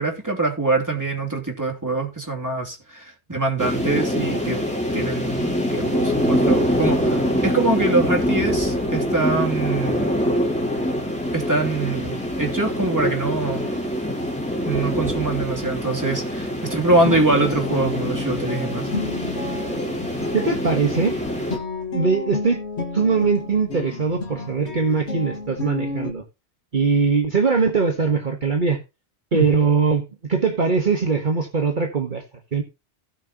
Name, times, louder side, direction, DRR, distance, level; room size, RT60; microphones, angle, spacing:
voice 1, 0.0-4.6 4.9-10.1 11.3-13.8 14.6-18.9 29.3-29.5, right 3 dB, 15° right, 2.9 m, -24 dB
sound 1, 3.6-21.6, equal, 5° left, 3.3 m, -24 dB
Guitar, 17.0-26.1, left 3 dB, 75° left, 2.3 m, -31 dB
voice 2, 20.3-21.2 21.9-22.6 22.9-26.2 26.7-28.8 29.3-32.2 32.5-32.6, right 5 dB, 45° right, 1.5 m, -21 dB
17.5 x 6.4 x 3.0 m
omnidirectional pair, 1.1 m